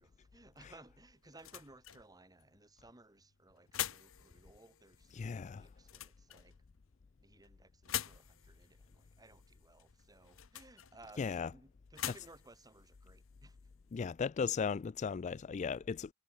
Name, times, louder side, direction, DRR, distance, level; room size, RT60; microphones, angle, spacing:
voice 1, 0.0-6.5 7.2-13.6, right 2 dB, 20° right, 2.7 m, -60 dB
sound 1, 0.5-14.0, left 11 dB, 80° left, 1.4 m, -47 dB
voice 2, 5.1-5.6 11.2-11.5 12.0-12.2 13.9-16.1, left 6 dB, 35° left, 0.3 m, -36 dB
head